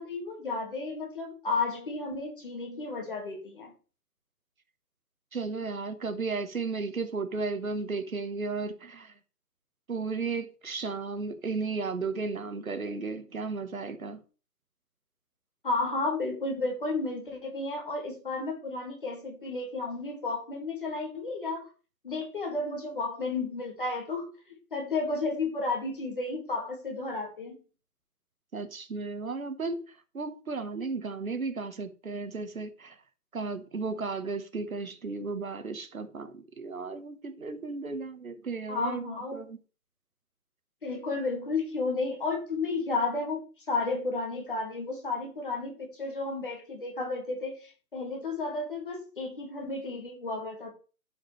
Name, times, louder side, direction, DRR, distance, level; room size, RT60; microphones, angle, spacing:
voice 1, 0.0-3.7 15.6-21.6 22.0-24.3 24.7-27.6 38.7-39.5 40.8-50.7, left 3 dB, 35° left, 2.0 m, -32 dB
voice 2, 5.3-9.1 9.9-14.2 28.5-29.8 30.1-32.9 33.3-39.6, right 4 dB, 60° right, 1.3 m, -34 dB
12.5 x 5.1 x 3.2 m
hypercardioid pair, 175°, 47 cm